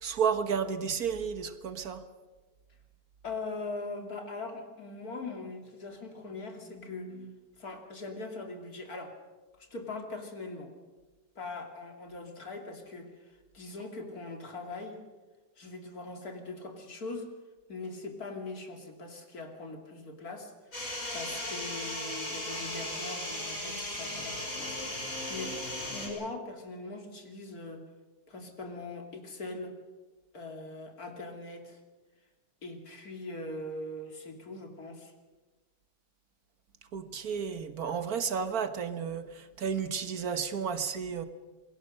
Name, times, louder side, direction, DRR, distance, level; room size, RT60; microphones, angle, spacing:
voice 1, 0.0-2.0 36.9-41.2, right 7 dB, 85° right, 10 dB, 1.9 m, -32 dB
voice 2, 3.2-9.2 9.6-10.7 11.4-15.0 15.6-17.3 17.7-25.6 25.9-27.9 28.3-29.8 30.3-31.8 32.6-35.1, left 3 dB, 90° left, 3 dB, 3.3 m, -41 dB
sound 1, 20.7-26.1, left 1 dB, 70° left, 6.8 m, -36 dB
27.5 x 21.5 x 6.5 m, 1.3 s
omnidirectional pair, 1.5 m